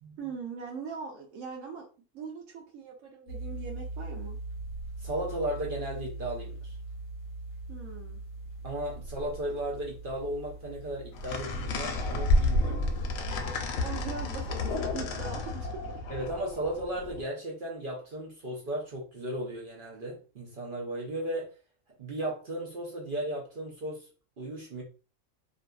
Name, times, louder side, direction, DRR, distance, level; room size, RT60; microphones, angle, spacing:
voice 1, 0.2-1.9 2.1-4.4 7.7-8.2 13.8-16.0, right 5 dB, 75° right, 1.0 m, -41 dB
sound 1, 3.3-13.2, right 2 dB, 60° left, 0.6 m, -41 dB
voice 2, 5.0-6.8 8.6-12.8 16.1-21.5 22.0-24.1 24.4-24.8, right 1 dB, 55° right, 0.6 m, -35 dB
sound 2, 11.1-17.2, left 2 dB, 75° left, 1.0 m, -30 dB
2.6 x 2.4 x 2.2 m
omnidirectional pair, 1.5 m